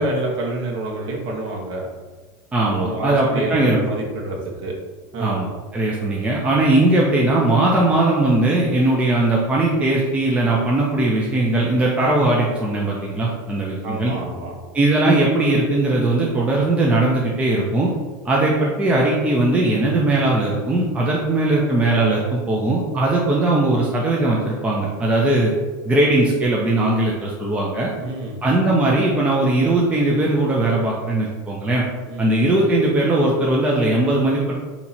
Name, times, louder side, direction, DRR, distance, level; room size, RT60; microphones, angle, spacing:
voice 1, 0.0-1.9 2.7-4.8 5.1-5.5 13.8-14.6 28.0-28.4 32.0-32.4, right 2 dB, 45° right, -2 dB, 1.2 m, -27 dB
voice 2, 2.5-3.8 5.2-14.1 14.7-17.9 18.2-25.5 25.8-27.9 28.4-31.9 32.2-34.5, right 2 dB, 10° right, -4 dB, 0.6 m, -19 dB
4.2 x 2.9 x 4.1 m, 1.3 s
supercardioid pair, 145°, 12 cm